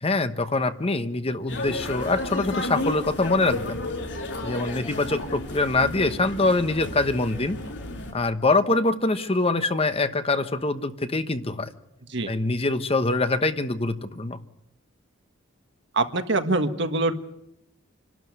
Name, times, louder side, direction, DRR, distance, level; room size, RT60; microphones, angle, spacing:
voice 1, 0.0-3.8 4.4-7.6 8.1-11.7 12.3-14.4, left 2 dB, 30° left, 10 dB, 1.1 m, -24 dB
sound 1, 1.5-8.1, left 2 dB, 65° left, 4.8 m, -33 dB
voice 2, 15.9-17.1, right 2 dB, 65° right, 7 dB, 1.6 m, -24 dB
27.5 x 12.5 x 9.6 m, 0.83 s
head